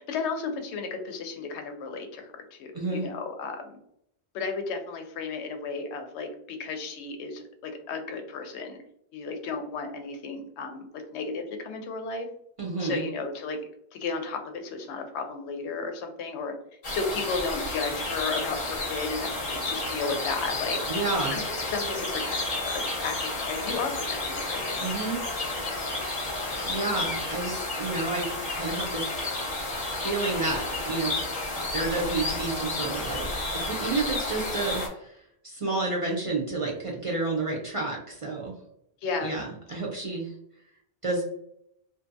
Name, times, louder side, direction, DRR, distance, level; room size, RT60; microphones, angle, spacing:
voice 1, 0.0-3.8 4.3-8.8 9.1-12.3 12.8-13.6 13.9-16.5 16.9-20.8 21.3-21.4 21.7-24.8 39.0-39.4, left 4 dB, 85° left, 5 dB, 0.8 m, -34 dB
voice 2, 2.7-3.1 12.6-13.0 20.9-21.4 24.8-25.2 26.6-29.1 30.0-31.2 31.7-33.3 33.5-35.2 35.4-38.5 39.2-40.3 41.0-41.2, right 3 dB, 45° right, -3 dB, 0.5 m, -30 dB
sound 1, 16.8-34.9, left 2 dB, 40° left, 0.8 m, -31 dB
2.6 x 2.2 x 2.5 m, 0.73 s
omnidirectional pair, 1.1 m